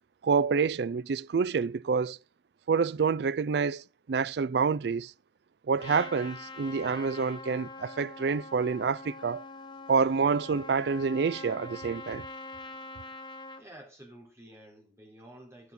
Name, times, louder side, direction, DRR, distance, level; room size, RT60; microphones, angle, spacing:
voice 1, 0.2-2.2 2.7-3.8 4.1-5.1 5.7-9.4 9.9-12.2, right 5 dB, 65° right, 0.4 m, -27 dB
Trumpet, 5.8-13.6, left 2 dB, 25° left, 1.0 m, -44 dB
voice 2, 13.6-15.7, right 1 dB, 15° right, 3.9 m, -51 dB
11.0 x 8.0 x 3.9 m
head